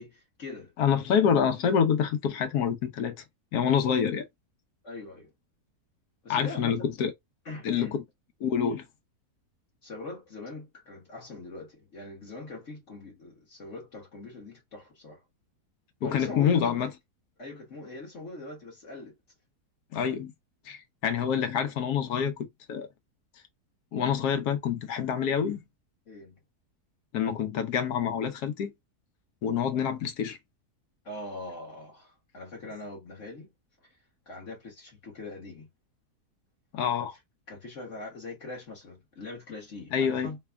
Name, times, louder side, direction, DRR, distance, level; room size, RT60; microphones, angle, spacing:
voice 1, 0.0-0.7 4.8-5.3 6.2-6.9 7.4-8.0 9.8-15.2 16.0-16.9 17.4-19.2 26.1-26.4 31.0-33.5 33.8-34.0 34.3-35.7 37.0-37.1 37.5-40.4, left 2 dB, 50° left, 1.5 m, -42 dB
voice 2, 0.8-3.2 3.5-4.2 6.3-7.1 7.6-8.0 8.4-8.8 16.0-16.9 19.9-20.3 20.7-22.3 22.7-22.9 23.9-25.6 27.1-28.7 29.4-30.4 36.7-37.1 39.9-40.3, left 7 dB, 75° left, 1.3 m, -26 dB
3.3 x 2.3 x 3.4 m
omnidirectional pair, 1.7 m